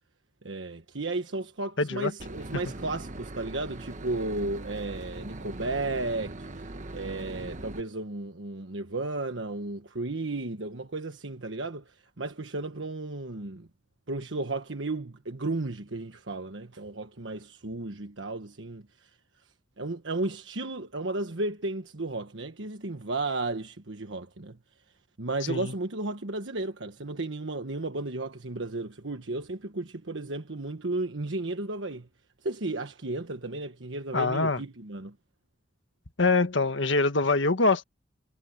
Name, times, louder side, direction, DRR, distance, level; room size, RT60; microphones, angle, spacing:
voice 1, 0.4-6.7 6.9-13.7 14.1-19.1 19.8-24.6 25.2-32.1 32.4-35.1, right 2 dB, 85° right, 1.3 m, -34 dB
voice 2, 1.8-2.1 25.5-25.7 34.1-34.6 36.2-37.8, left 3 dB, 85° left, 1.6 m, -24 dB
Boat Water vehicle / Engine, 2.2-7.8, right 2 dB, 45° right, 1.4 m, -40 dB
head